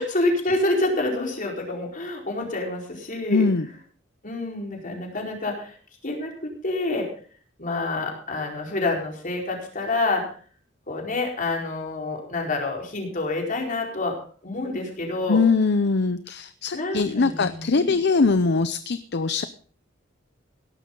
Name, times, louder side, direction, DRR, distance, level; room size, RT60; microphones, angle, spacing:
voice 1, 0.0-3.4 4.2-5.8 6.0-7.1 7.6-10.2 10.9-14.1 14.4-15.4 16.7-18.0, left 2 dB, 45° left, 0 dB, 4.6 m, -27 dB
voice 2, 3.3-3.7 15.3-19.4, left 4 dB, 60° left, 12 dB, 0.7 m, -22 dB
17.0 x 12.0 x 3.9 m, 0.43 s
head